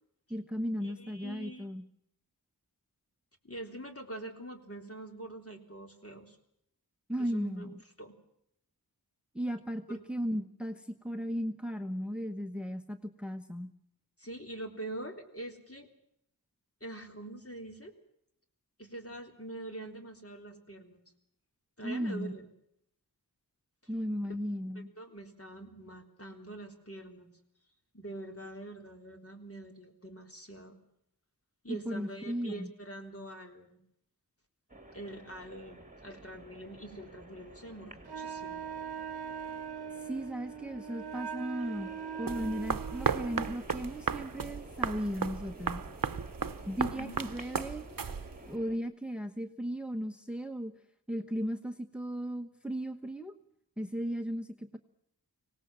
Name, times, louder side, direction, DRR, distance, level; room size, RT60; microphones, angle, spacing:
voice 1, 0.3-1.8 7.1-7.7 9.3-13.7 21.8-22.3 23.9-24.9 31.7-32.7 40.0-41.9 42.2-45.8 46.7-47.9 48.5-50.7 51.1-53.3 53.8-54.8, equal, 5° right, 6 dB, 1.1 m, -36 dB
voice 2, 0.8-1.7 3.4-6.4 7.2-7.7 8.0-8.1 9.9-10.0 14.2-15.9 16.8-17.9 18.8-21.0 21.8-22.5 24.8-27.3 27.9-30.8 31.6-33.8 34.9-38.6 46.8-47.2, right 1 dB, 35° left, 4 dB, 3.7 m, -44 dB
sound 1, 34.7-48.8, right 1 dB, 20° right, 3.0 m, -51 dB
Wind instrument woodwind instrument, 38.1-43.6, right 7 dB, 90° right, 0.8 m, -41 dB
sound 2, 42.3-48.6, right 6 dB, 60° right, 0.9 m, -35 dB
25.0 x 18.5 x 7.5 m, 0.75 s
wide cardioid pair, 65°, 38 cm